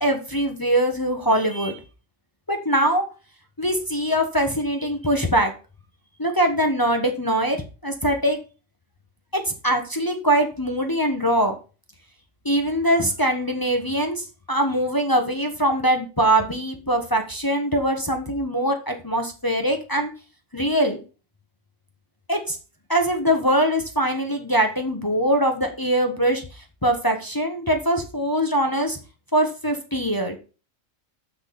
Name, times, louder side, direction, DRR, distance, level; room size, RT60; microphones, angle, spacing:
voice 1, 0.0-1.8 2.5-3.0 3.6-5.5 6.2-8.4 9.3-11.5 12.4-20.1 20.5-21.0 22.3-22.6 22.9-26.4 26.8-29.0 29.3-30.4, right 1 dB, 15° left, 4 dB, 1.1 m, -22 dB
6.4 x 6.2 x 6.9 m, 0.34 s
omnidirectional pair, 1.3 m